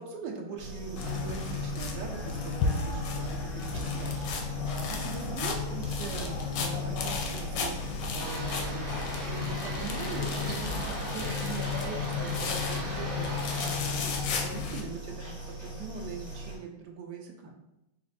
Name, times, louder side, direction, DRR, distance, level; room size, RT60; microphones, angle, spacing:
voice 1, 0.0-3.3 3.6-7.8 8.1-17.6, right 5 dB, 70° right, 2 dB, 1.1 m, -41 dB
sound 1, 0.6-16.6, right 1 dB, 10° right, 0.9 m, -41 dB
sound 2, 1.0-14.8, left 5 dB, 70° left, 1.1 m, -33 dB
sound 3, 8.2-13.8, right 1 dB, 40° right, 0.9 m, -39 dB
4.2 x 2.5 x 4.0 m, 0.90 s
omnidirectional pair, 2.3 m